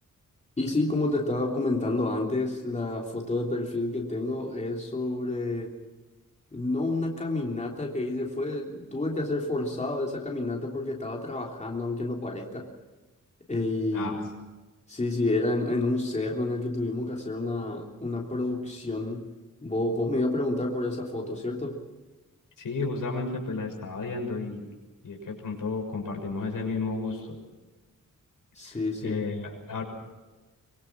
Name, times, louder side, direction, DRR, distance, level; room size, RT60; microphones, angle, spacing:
voice 1, 0.6-5.7 6.5-12.7 13.5-14.3 14.9-19.3 19.6-21.8 28.5-29.3, left 2 dB, 20° left, -1 dB, 3.4 m, -29 dB
voice 2, 22.6-24.7 25.0-27.4 28.6-29.8, left 3 dB, 80° left, 1 dB, 6.7 m, -32 dB
24.5 x 23.5 x 6.1 m, 1.2 s
wide cardioid pair, 140°, 32 cm